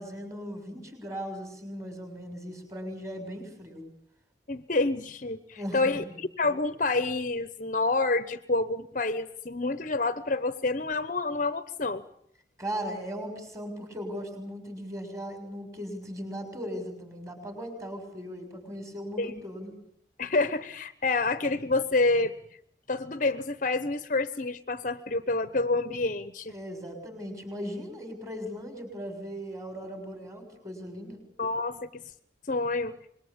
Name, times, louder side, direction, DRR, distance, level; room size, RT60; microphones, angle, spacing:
voice 1, 0.0-3.8 5.6-6.1 12.6-19.8 26.5-31.2, equal, 15° right, 6 dB, 6.6 m, -38 dB
voice 2, 4.5-12.0 19.2-19.4 20.2-22.3 22.9-26.5 31.4-32.0 32.5-32.9, left 3 dB, 45° left, 13 dB, 1.0 m, -28 dB
26.0 x 22.0 x 8.8 m, 0.70 s
head